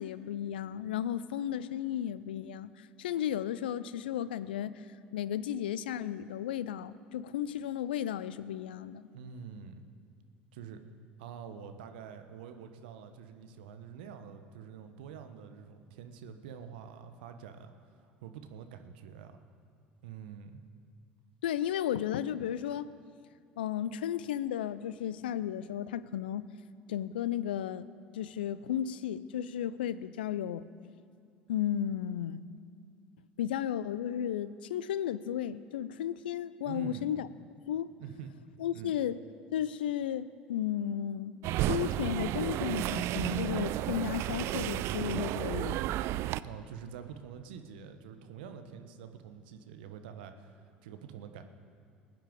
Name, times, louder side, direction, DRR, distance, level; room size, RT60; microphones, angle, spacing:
voice 1, 0.0-4.8 5.1-9.1 21.4-22.9 23.6-26.5 26.9-27.9 28.1-30.7 31.5-32.4 33.4-37.3 37.6-37.9 38.6-39.2 39.5-45.8, left 10 dB, 75° left, 16 dB, 0.4 m, -34 dB
voice 2, 9.1-9.8 10.5-10.8 11.2-17.7 18.0-19.4 20.0-20.6 36.6-37.1 38.0-38.3 38.7-38.9 46.4-51.4, right 7 dB, 70° right, 8 dB, 1.0 m, -46 dB
sound 1, 41.4-46.4, right 14 dB, 55° right, 0.4 m, -32 dB
20.5 x 9.1 x 5.2 m, 2.3 s
hypercardioid pair, 65°, 5 cm